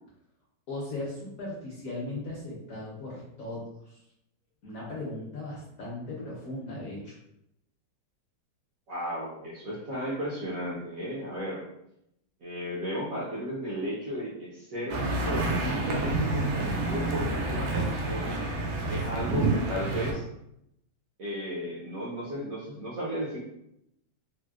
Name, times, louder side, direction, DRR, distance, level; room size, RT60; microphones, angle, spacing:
voice 1, 0.7-4.0 4.6-7.2, left 2 dB, 60° left, -6 dB, 0.9 m, -37 dB
voice 2, 8.9-11.7 12.4-18.4 18.9-20.2 21.2-23.4, equal, 65° right, -6 dB, 0.8 m, -34 dB
sound 1, 14.9-20.1, right 2 dB, 85° right, 1.4 m, -28 dB
4.3 x 2.1 x 2.3 m, 0.80 s
omnidirectional pair, 2.1 m